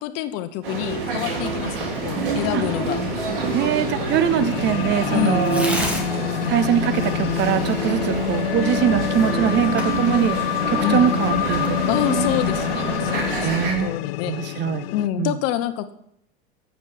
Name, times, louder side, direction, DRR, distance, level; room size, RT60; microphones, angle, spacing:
voice 1, 0.0-3.0 5.1-5.5 10.8-11.1 11.9-14.7 14.9-15.9, left 12 dB, 55° left, 11 dB, 0.9 m, -27 dB
sound 1, 0.6-13.7, right 4 dB, 75° right, 3.0 m, -27 dB
Tearing, 1.4-12.9, equal, 5° right, 1.6 m, -38 dB
sound 2, 2.0-15.1, left 12 dB, 85° left, 0.5 m, -27 dB
voice 2, 3.5-5.7 6.4-10.4 10.7-11.8 13.4-14.0 14.3-14.9 15.2-15.4, right 9 dB, 40° right, 14 dB, 0.6 m, -22 dB
7.4 x 5.2 x 6.8 m, 0.72 s
supercardioid pair, 115°, 29 cm